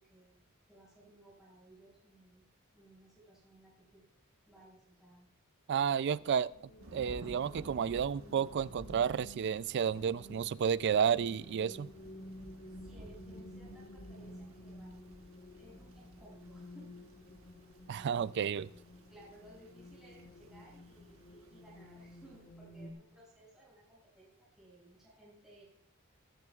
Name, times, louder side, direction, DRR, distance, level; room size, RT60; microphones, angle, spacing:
voice 1, 0.0-2.4 2.7-4.0 4.5-5.3 12.7-15.1 15.5-17.0 19.1-24.3 24.6-25.6, right 1 dB, 5° right, -7 dB, 6.1 m, -59 dB
voice 2, 5.7-6.5 6.9-11.9 17.9-18.7, right 7 dB, 50° right, 18 dB, 0.3 m, -31 dB
sound 1, 6.2-22.9, left 1 dB, 45° left, 1.4 m, -53 dB
Thunder / Rain, 6.8-22.4, right 1 dB, 70° right, 1.3 m, -55 dB
23.0 x 10.5 x 2.4 m, 0.74 s
head